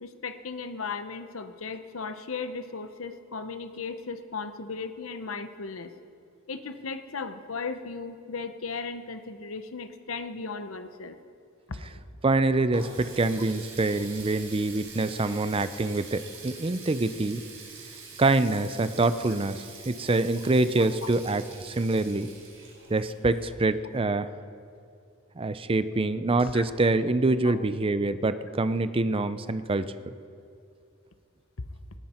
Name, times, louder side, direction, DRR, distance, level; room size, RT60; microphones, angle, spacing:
voice 1, 0.0-5.9 6.5-11.2 11.7-12.0 20.8-21.1 26.5-26.7 27.4-27.5, left 4 dB, 85° left, 9 dB, 0.9 m, -36 dB
voice 2, 12.2-17.4 18.2-22.3 22.9-24.3 25.4-29.8, right 2 dB, 25° right, 13 dB, 0.5 m, -25 dB
Water tap faucet, 12.3-23.9, right 5 dB, 70° right, 4.3 m, -46 dB
18.0 x 18.0 x 4.4 m, 2.4 s
head